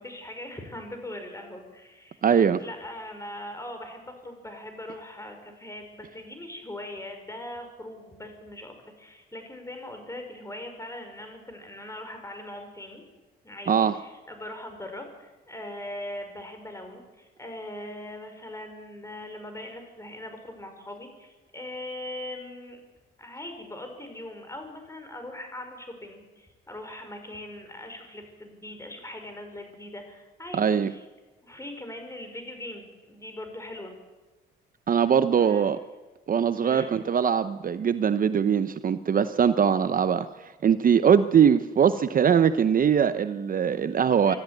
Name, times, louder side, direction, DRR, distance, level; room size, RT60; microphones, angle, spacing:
voice 1, 0.0-2.2 2.6-13.0 13.4-22.8 23.2-31.0 31.4-33.9 35.4-35.7 36.6-36.9 44.2-44.4, left 1 dB, 15° left, 5 dB, 5.4 m, -40 dB
voice 2, 2.2-2.6 13.7-13.9 30.5-30.9 34.9-35.8 36.3-44.3, right 7 dB, 45° right, 12 dB, 0.8 m, -22 dB
25.0 x 13.5 x 9.2 m, 1.2 s
cardioid pair, 90°, 20 cm